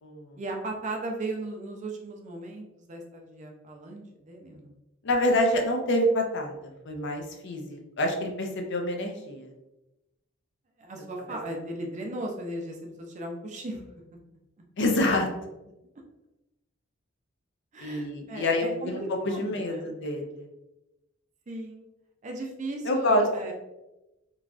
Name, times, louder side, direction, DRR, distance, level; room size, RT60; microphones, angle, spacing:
voice 1, 0.3-4.7 10.8-13.8 17.7-19.9 21.5-21.8 22.2-23.5, right 2 dB, 35° right, 1 dB, 0.5 m, -36 dB
voice 2, 5.0-9.5 11.3-11.4 14.8-15.3 17.8-20.5 22.9-23.2, left 1 dB, 60° left, 3 dB, 0.5 m, -27 dB
3.1 x 2.3 x 2.4 m, 0.99 s
head